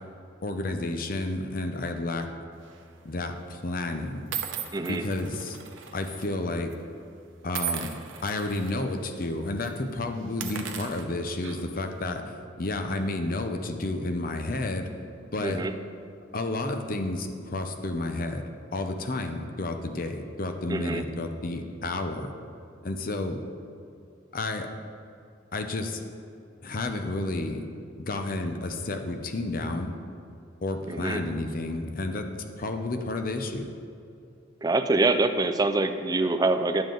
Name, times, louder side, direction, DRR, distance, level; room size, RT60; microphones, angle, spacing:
voice 1, 0.4-2.3 3.0-4.3 4.9-5.6 5.9-6.7 7.4-7.9 8.2-12.2 12.6-14.9 15.3-15.7 16.3-18.4 18.7-22.3 22.8-23.4 24.3-24.7 25.5-26.0 26.6-27.6 27.9-29.9 30.6-32.3 32.6-33.7, left 2 dB, 45° left, 6 dB, 0.7 m, -31 dB
sound 1, 2.6-2.9 3.7-3.8 4.3-6.3 6.5-6.7 7.5-8.7 9.1-9.3 9.6-9.8 10.3-11.8, right 9 dB, 80° right, 0.8 m, -37 dB
voice 2, 4.7-5.0 15.4-15.7 20.7-21.0 30.9-31.2 34.6-36.8, right 2 dB, 20° right, 7 dB, 0.4 m, -25 dB
10.5 x 7.2 x 3.8 m, 2.5 s
head